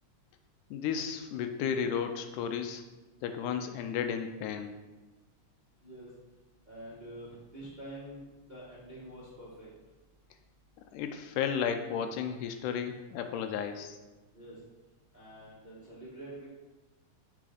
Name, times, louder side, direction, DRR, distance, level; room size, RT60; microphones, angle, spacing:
voice 1, 0.7-2.8 3.2-4.7 10.9-14.0, left 7 dB, 80° left, 7 dB, 2.0 m, -33 dB
voice 2, 6.6-9.7 14.3-14.6 15.1-16.5, right 1 dB, 40° right, -8 dB, 0.6 m, -46 dB
6.1 x 4.2 x 4.9 m, 1.1 s
omnidirectional pair, 3.8 m